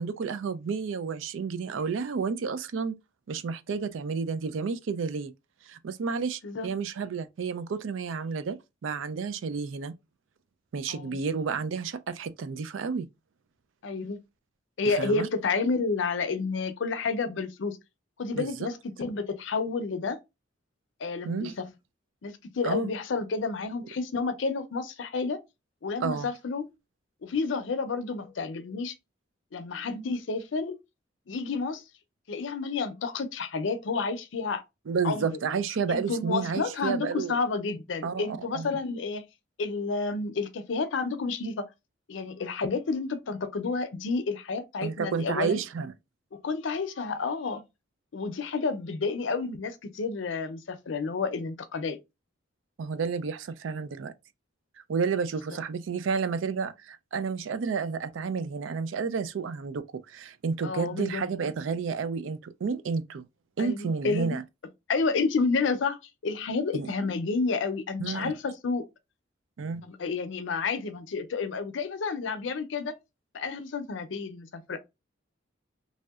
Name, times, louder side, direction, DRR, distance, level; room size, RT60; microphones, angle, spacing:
voice 1, 0.0-2.9 3.3-5.3 5.7-9.9 10.7-13.1 14.8-15.3 18.3-18.7 21.2-21.6 22.6-22.9 26.0-26.3 34.9-37.4 38.0-38.7 44.8-45.9 52.8-54.1 54.9-63.3 63.6-64.4 66.7-66.9 68.0-68.4 69.6-69.8, right 5 dB, 80° right, 0.4 m, -31 dB
voice 2, 13.8-14.2 14.8-17.8 18.2-20.2 21.0-21.7 22.2-25.4 25.8-26.7 27.2-28.9 29.5-30.8 31.3-31.8 32.3-34.6 35.0-35.4 35.9-39.2 39.6-41.7 42.1-45.6 46.3-47.6 48.1-52.0 60.6-61.2 63.6-64.4 64.9-68.9 69.8-72.9 73.3-74.8, left 4 dB, 70° left, 0.5 m, -30 dB
3.1 x 2.7 x 2.3 m
head